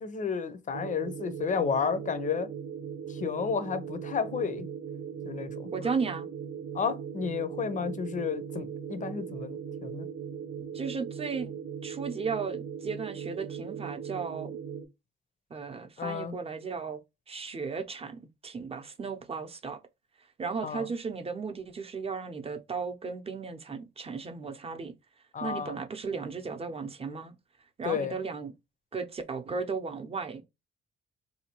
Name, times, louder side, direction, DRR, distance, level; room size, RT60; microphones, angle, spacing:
voice 1, 0.0-2.5 3.1-4.7 5.2-5.7 6.7-10.1 16.0-16.3 20.6-20.9 25.3-25.7 27.8-28.1, left 6 dB, 40° left, 0.6 m, -32 dB
sound 1, 0.7-14.8, right 7 dB, 70° right, 0.7 m, -39 dB
voice 2, 5.7-6.3 10.7-11.6 11.8-14.6 15.5-17.0 17.3-19.8 20.4-24.9 25.4-27.3 27.8-28.5 28.9-30.4, right 5 dB, 30° right, 0.7 m, -35 dB
3.7 x 2.8 x 2.9 m
cardioid pair, 90°, 20 cm